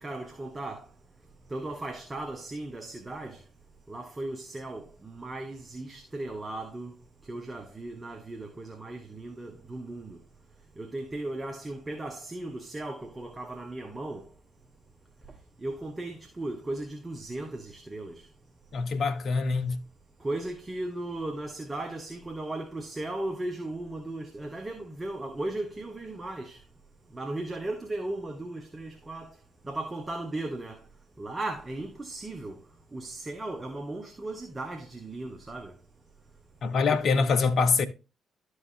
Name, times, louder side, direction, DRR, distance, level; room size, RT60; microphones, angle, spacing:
voice 1, 0.0-0.8 1.5-3.4 3.9-6.9 7.3-10.2 10.8-14.2 15.6-18.2 20.2-26.6 27.1-29.3 29.6-30.8 31.2-32.6 32.9-35.7 36.9-37.3, right 2 dB, 25° right, 1.4 m, -36 dB
voice 2, 18.7-19.8 36.6-37.9, left 4 dB, 60° left, 1.0 m, -24 dB
12.5 x 4.9 x 2.8 m
hypercardioid pair, 45°, 0 cm